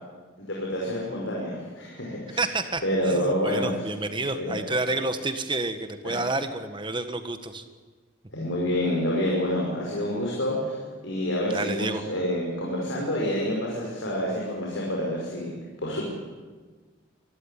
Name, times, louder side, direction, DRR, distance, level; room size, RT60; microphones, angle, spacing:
voice 1, 0.4-2.4 2.8-3.7 4.4-4.8 6.0-6.2 8.3-10.8 11.0-15.5 15.8-16.0, equal, 70° left, -3 dB, 5.5 m, -28 dB
voice 2, 2.3-7.6 11.5-12.0, right 2 dB, 25° right, 9 dB, 1.5 m, -29 dB
25.0 x 14.5 x 10.0 m, 1.4 s
head